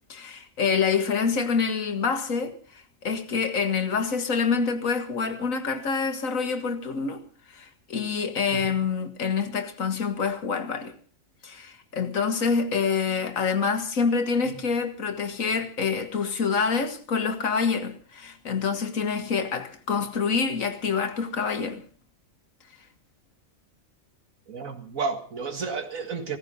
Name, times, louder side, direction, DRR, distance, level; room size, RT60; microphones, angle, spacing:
voice 1, 0.1-7.2 7.5-10.9 11.4-21.8, left 5 dB, 80° left, 1.9 m, -26 dB
voice 2, 24.5-26.4, right 4 dB, 90° right, 2.2 m, -32 dB
16.5 x 15.0 x 5.5 m
omnidirectional pair, 1.4 m